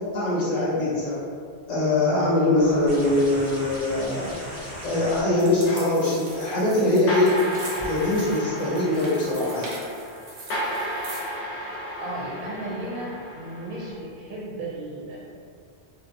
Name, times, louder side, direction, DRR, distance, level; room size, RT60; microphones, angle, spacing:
voice 1, 0.1-1.2 1.7-4.4 4.8-7.3 7.8-9.8, left 2 dB, 45° left, -8 dB, 0.7 m, -22 dB
sound 1, 2.6-7.9 9.2-9.3, equal, 20° right, 0.5 m, -39 dB
sound 2, 5.3-11.4, right 2 dB, 90° right, 0.9 m, -42 dB
sound 3, 7.1-13.9, equal, 90° left, 0.9 m, -33 dB
voice 2, 12.0-15.2, right 1 dB, 60° right, -6 dB, 0.6 m, -34 dB
2.7 x 2.1 x 2.5 m, 2.2 s
omnidirectional pair, 1.1 m